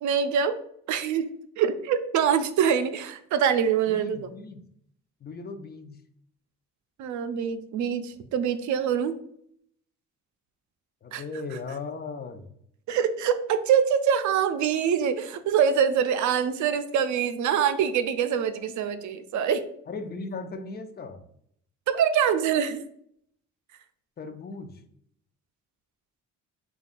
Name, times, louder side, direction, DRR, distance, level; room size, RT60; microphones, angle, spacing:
voice 1, 0.0-0.6 0.9-4.3 7.0-9.2 11.1-11.2 12.9-19.7 21.9-22.8, right 8 dB, 75° right, 11 dB, 0.5 m, -24 dB
voice 2, 3.9-4.6 5.2-6.0 11.0-12.5 19.9-21.2 24.2-24.8, left 4 dB, 35° left, 7 dB, 0.6 m, -37 dB
6.6 x 2.3 x 2.5 m, 0.69 s
cardioid pair, 90°, 30 cm